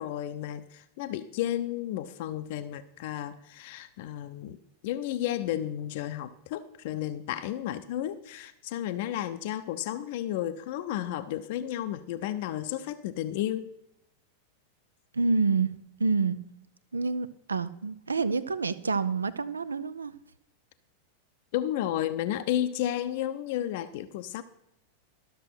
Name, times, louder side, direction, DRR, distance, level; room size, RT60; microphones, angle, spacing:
voice 1, 0.0-4.6 4.8-13.7 21.5-24.4, left 12 dB, 50° left, 10 dB, 0.6 m, -32 dB
voice 2, 15.1-15.7 16.0-16.4 16.9-20.1, right 4 dB, 75° right, 16 dB, 0.5 m, -27 dB
12.5 x 6.6 x 5.9 m, 0.79 s
figure-of-eight pair, 90°, 0 cm